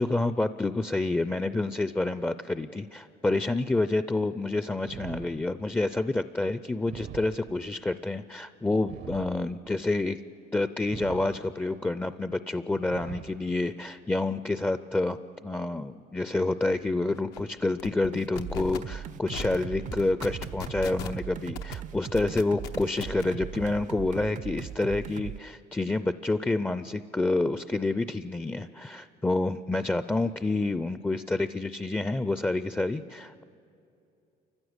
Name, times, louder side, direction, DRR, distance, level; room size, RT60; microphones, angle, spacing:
voice 1, 0.0-10.2 10.5-33.4, left 2 dB, 10° left, 12 dB, 0.4 m, -28 dB
sound 1, 4.8-5.9 6.8-7.9 8.8-9.9 10.8-11.9 12.8-13.9, right 10 dB, 75° right, 0.8 m, -44 dB
sound 2, 16.7-16.8 17.1-17.4 17.8-18.1 18.4-18.8 19.3-19.6 19.9-21.2 21.5-21.7 22.2-23.2, left 9 dB, 90° left, 1.0 m, -37 dB
sound 3, 18.1-25.4, right 9 dB, 45° right, 0.4 m, -39 dB
29.0 x 15.0 x 8.0 m, 2.7 s
cardioid pair, 110°, 17 cm